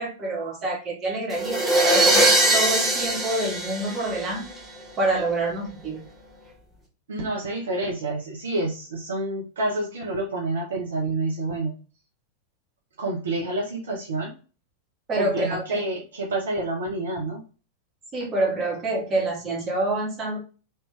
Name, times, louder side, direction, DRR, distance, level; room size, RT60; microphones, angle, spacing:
voice 1, 0.0-4.5 5.0-6.0 15.1-15.8 18.1-20.4, right 2 dB, 25° right, -2 dB, 1.5 m, -27 dB
sound 1, 1.3-4.6, right 1 dB, 10° right, 1.2 m, -21 dB
voice 2, 7.1-11.7 13.0-14.3 15.2-17.4, right 2 dB, 65° right, -1 dB, 0.9 m, -28 dB
3.2 x 2.8 x 3.5 m, 0.35 s
figure-of-eight pair, 90°, 0 cm